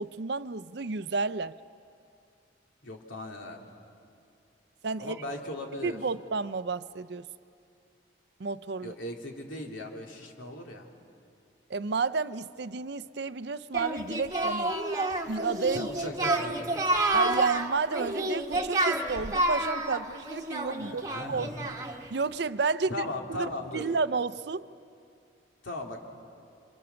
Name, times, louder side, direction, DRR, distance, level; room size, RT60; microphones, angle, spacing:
voice 1, 0.0-1.5 4.8-5.2 5.8-7.3 8.4-8.9 11.7-14.7 15.3-15.9 17.1-21.0 21.3-21.7 22.1-24.7, right 4 dB, 55° right, 15 dB, 0.5 m, -31 dB
voice 2, 2.8-3.7 5.0-6.0 8.8-10.9 15.7-16.9 20.8-21.7 22.9-23.9 25.6-26.0, left 1 dB, 75° left, 1 dB, 3.0 m, -38 dB
Singing, 13.7-22.1, right 2 dB, 15° right, 1.2 m, -29 dB
28.5 x 26.5 x 7.0 m, 2.5 s
head